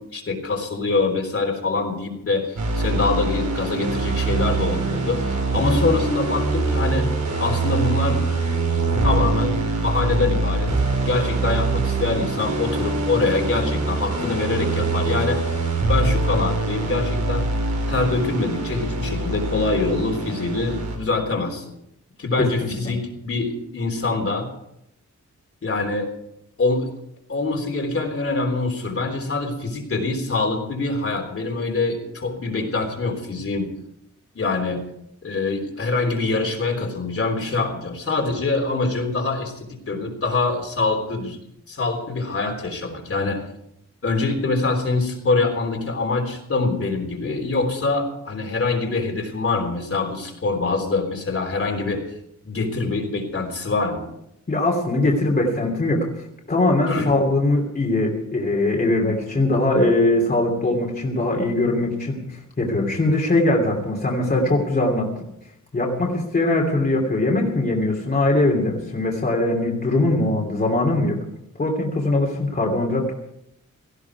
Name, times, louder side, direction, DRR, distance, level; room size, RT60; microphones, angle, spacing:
voice 1, 0.0-7.1 7.4-8.2 9.0-10.7 11.1-15.4 15.9-17.5 17.9-21.6 22.2-24.5 25.6-26.1 26.6-26.9 27.3-33.7 34.4-34.8 35.2-41.4 41.7-43.4 44.0-52.0 52.5-54.1 56.9-57.1, left 3 dB, 50° left, 2 dB, 3.6 m, -24 dB
sound 1, 2.6-21.0, right 3 dB, 70° right, 4.8 m, -24 dB
voice 2, 54.5-56.0 56.5-65.1 65.7-71.2 71.6-73.1, left 2 dB, 30° left, -1 dB, 2.9 m, -21 dB
18.0 x 15.0 x 4.8 m, 0.80 s
wide cardioid pair, 150°, 30 cm